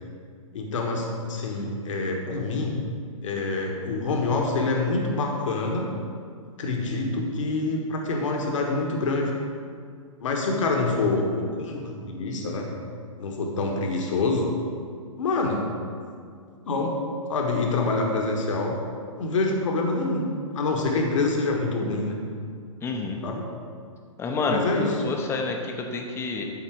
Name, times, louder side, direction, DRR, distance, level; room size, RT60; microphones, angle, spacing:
voice 1, 0.5-2.8 3.2-5.9 6.6-9.3 10.2-12.7 13.2-14.5 15.2-15.7 16.7-17.0 17.3-18.7 19.1-20.3 20.5-22.2 23.2-23.4 24.4-25.0, left 3 dB, 65° left, 1 dB, 1.4 m, -26 dB
voice 2, 22.8-23.2 24.2-26.4, left 3 dB, 15° left, 2 dB, 0.8 m, -29 dB
11.5 x 3.8 x 4.7 m, 2.2 s
hypercardioid pair, 125°, 18 cm